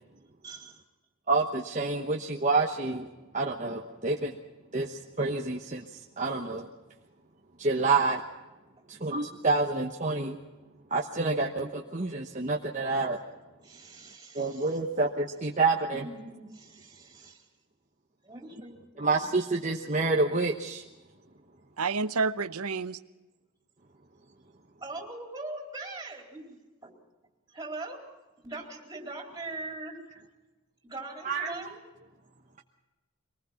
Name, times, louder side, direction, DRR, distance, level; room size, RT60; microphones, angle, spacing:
voice 1, 0.4-0.8 13.6-14.8 15.9-17.5 18.2-19.4 24.8-26.9 27.5-28.1 28.4-30.0 30.8-31.8, right 2 dB, 15° right, 1 dB, 4.0 m, -42 dB
voice 2, 1.3-3.1 3.3-4.4 4.7-6.7 7.6-8.2 8.9-10.4 10.9-13.2 14.3-16.1 19.0-20.8 31.2-31.5, right 3 dB, 35° right, 0 dB, 1.1 m, -28 dB
voice 3, 21.8-23.0, right 4 dB, 80° right, 14 dB, 0.9 m, -29 dB
24.5 x 19.5 x 5.8 m, 1.1 s
head